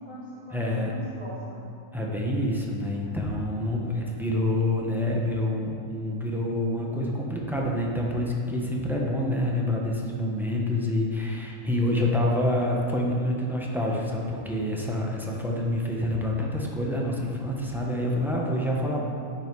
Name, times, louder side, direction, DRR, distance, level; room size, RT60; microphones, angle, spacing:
voice 1, 0.0-1.7 3.0-3.2 18.8-19.0, right 1 dB, 25° right, -9 dB, 1.2 m, -43 dB
voice 2, 0.5-0.9 1.9-19.0, left 1 dB, ahead, -3 dB, 0.9 m, -27 dB
10.0 x 5.6 x 4.7 m, 2.5 s
omnidirectional pair, 1.5 m